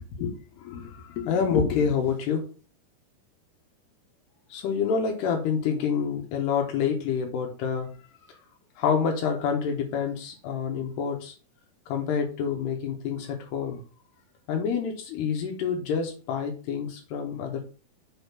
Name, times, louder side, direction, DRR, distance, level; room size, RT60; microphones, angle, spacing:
voice 1, 0.2-2.5 4.5-7.9 8.3-8.4 8.8-11.3 11.9-13.8 14.5-17.6, left 6 dB, 85° left, 2 dB, 3.4 m, -27 dB
6.9 x 3.7 x 5.8 m, 0.36 s
omnidirectional pair, 4.6 m